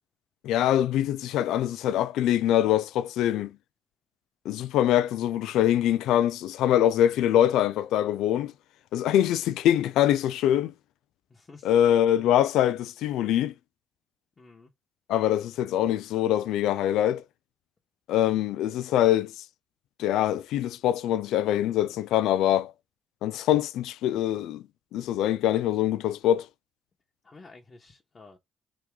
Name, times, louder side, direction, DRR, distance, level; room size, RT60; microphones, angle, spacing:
voice 1, 0.4-3.5 4.5-8.5 8.9-10.7 11.6-13.5 15.1-17.2 18.1-19.3 20.0-22.7 23.2-24.6 24.9-26.5, left 11 dB, 90° left, 0.3 m, -24 dB
voice 2, 11.3-11.7 14.4-14.7 27.2-28.4, left 3 dB, 30° left, 1.1 m, -51 dB
3.5 x 3.0 x 4.6 m
cardioid pair, 90°, 0 cm